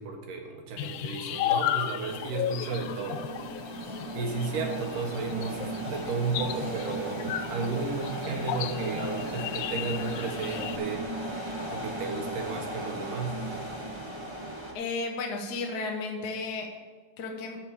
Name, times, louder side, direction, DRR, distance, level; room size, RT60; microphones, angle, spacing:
voice 1, 0.0-3.2 4.1-11.1 11.7-13.4, right 4 dB, 80° right, 2 dB, 3.1 m, -33 dB
sound 1, 0.8-10.8, left 12 dB, 80° left, 1.8 m, -34 dB
sound 2, 2.0-14.7, right 1 dB, 30° right, 0.4 m, -36 dB
voice 2, 14.7-16.7 17.2-17.6, left 3 dB, 50° left, 2 dB, 1.3 m, -33 dB
14.0 x 4.7 x 7.2 m, 1.4 s
omnidirectional pair, 3.7 m